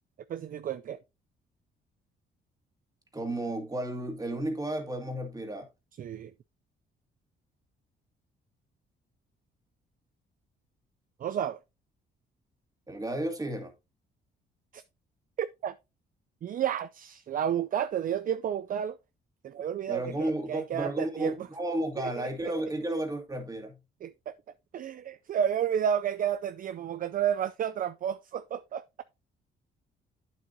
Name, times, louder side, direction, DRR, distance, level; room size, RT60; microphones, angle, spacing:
voice 1, 0.3-1.0 6.0-6.3 11.2-11.6 14.7-14.8 15.4-15.7 16.4-19.0 19.4-21.3 22.0-22.3 24.0-24.3 24.7-29.0, right 9 dB, 45° right, 0.4 m, -31 dB
voice 2, 3.1-5.7 12.9-13.7 19.9-23.8, right 1 dB, 20° right, 2.2 m, -33 dB
8.7 x 7.3 x 2.7 m
cardioid pair, 90°, 20 cm